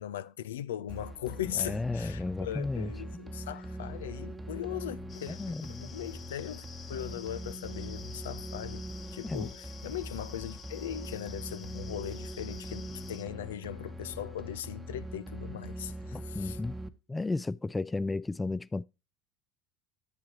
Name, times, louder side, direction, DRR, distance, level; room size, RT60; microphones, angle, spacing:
voice 1, 0.0-5.4 5.8-8.8 9.1-16.6, left 11 dB, 80° left, 0.5 m, -39 dB
sound 1, 0.9-16.9, right 1 dB, 15° right, 1.0 m, -42 dB
voice 2, 1.5-2.9 5.3-5.9 9.2-9.5 16.1-16.8 17.1-18.8, left 3 dB, 15° left, 0.4 m, -33 dB
sound 2, 5.1-13.2, left 7 dB, 40° left, 1.8 m, -51 dB
10.5 x 8.5 x 2.9 m
hypercardioid pair, 80°, 0 cm